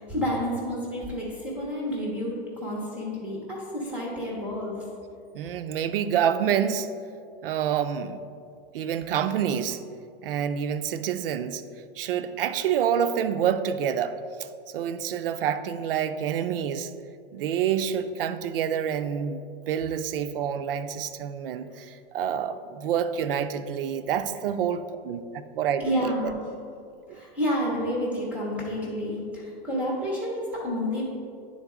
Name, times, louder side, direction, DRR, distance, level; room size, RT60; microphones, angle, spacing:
voice 1, 0.0-4.8 24.3-24.4 25.8-26.4 27.1-31.0, equal, 5° right, -4 dB, 0.6 m, -30 dB
voice 2, 5.3-6.9 7.4-8.2 8.7-9.8 10.2-11.6 12.0-14.2 14.7-16.9 17.3-19.4 19.7-25.2 25.5-25.8, right 8 dB, 65° right, 11 dB, 0.5 m, -27 dB
9.4 x 3.8 x 3.6 m, 2.4 s
supercardioid pair, 165°, 31 cm